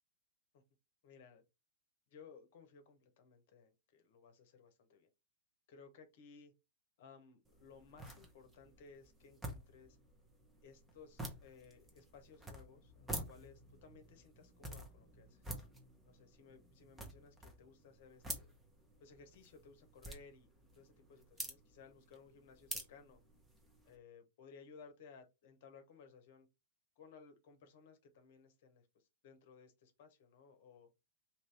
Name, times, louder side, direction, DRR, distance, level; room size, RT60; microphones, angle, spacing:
voice 1, 1.0-1.4 2.1-5.1 5.7-6.5 7.0-10.0 10.6-15.5 16.1-18.5 19.0-23.2 23.8-26.5 27.0-30.9, left 5 dB, 55° left, 0.8 m, -60 dB
sound 1, 7.4-24.0, right 1 dB, 10° right, 0.9 m, -50 dB
2.8 x 2.6 x 3.4 m
hypercardioid pair, 110°, 0 cm